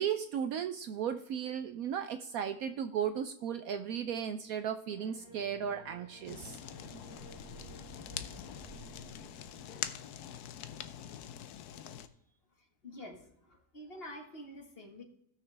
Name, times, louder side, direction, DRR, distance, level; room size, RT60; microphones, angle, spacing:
voice 1, 0.0-6.6, right 8 dB, 70° right, 9 dB, 0.9 m, -35 dB
sound 1, 4.9-10.1, right 1 dB, 30° right, 2.1 m, -53 dB
Fire, 6.3-12.1, left 10 dB, 75° left, 1.1 m, -44 dB
voice 2, 12.8-15.0, left 1 dB, 35° left, 2 dB, 1.8 m, -48 dB
17.0 x 6.4 x 3.4 m, 0.72 s
omnidirectional pair, 1.8 m